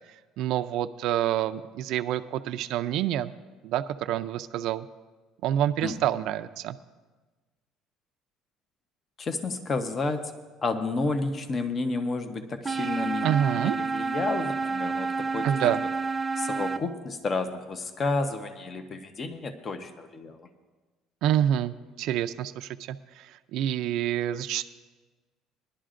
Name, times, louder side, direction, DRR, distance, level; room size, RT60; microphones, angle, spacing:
voice 1, 0.4-3.3 3.6-4.9 5.4-6.8 13.2-13.8 15.4-15.8 21.2-24.6, right 11 dB, 70° right, 9 dB, 0.4 m, -27 dB
voice 2, 9.2-10.3 10.6-13.3 13.6-15.7 16.4-20.5, left 3 dB, 35° left, 7 dB, 0.8 m, -31 dB
sound 1, 12.6-16.8, right 4 dB, 15° right, 0.5 m, -29 dB
21.5 x 11.5 x 2.5 m, 1.3 s
cardioid pair, 115°, 0 cm